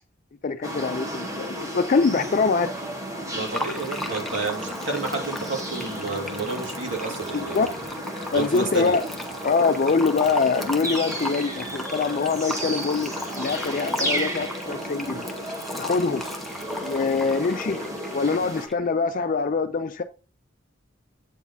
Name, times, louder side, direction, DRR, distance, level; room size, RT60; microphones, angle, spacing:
voice 1, 0.4-2.7 7.3-7.7 8.3-9.0 9.4-15.3 15.8-16.2 16.8-17.8 18.1-20.0, left 4 dB, 45° left, 0.5 m, -24 dB
sound 1, 0.6-18.7, equal, 15° right, 1.3 m, -33 dB
voice 2, 3.3-7.7 8.3-9.0, right 3 dB, 70° right, 2.3 m, -30 dB
Fill (with liquid), 3.5-18.7, left 1 dB, ahead, 0.8 m, -37 dB
8.3 x 3.6 x 4.0 m
head